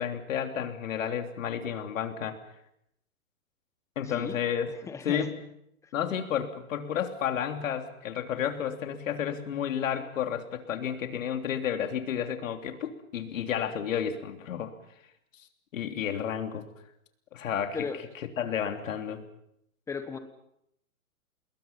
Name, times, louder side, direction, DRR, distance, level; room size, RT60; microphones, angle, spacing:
voice 1, 0.0-2.4 3.9-4.7 5.0-5.3 5.9-14.7 15.7-16.7 17.3-17.9 18.4-19.3, left 8 dB, 65° left, 5 dB, 3.3 m, -31 dB
voice 2, 4.1-4.4 4.9-5.3 17.7-18.0 19.9-20.2, left 5 dB, 5° left, 9 dB, 1.2 m, -35 dB
29.0 x 21.0 x 5.7 m, 0.77 s
hypercardioid pair, 160°, 43 cm